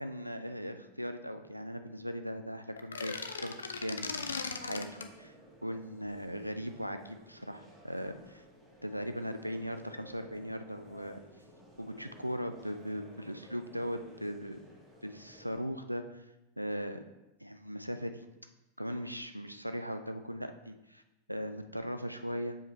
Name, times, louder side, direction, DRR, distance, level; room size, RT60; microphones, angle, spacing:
voice 1, 0.0-5.3 5.6-8.4 8.8-11.2 11.8-14.6 15.0-16.2 16.6-17.0 17.4-18.3 18.8-21.0 21.3-22.6, equal, 90° right, 8 dB, 0.4 m, -39 dB
sound 1, 2.8-5.1, left 5 dB, 70° left, 0.4 m, -38 dB
sound 2, 4.4-15.6, equal, 20° right, 1.8 m, -56 dB
7.2 x 5.0 x 3.1 m, 0.95 s
figure-of-eight pair, 90°, 0 cm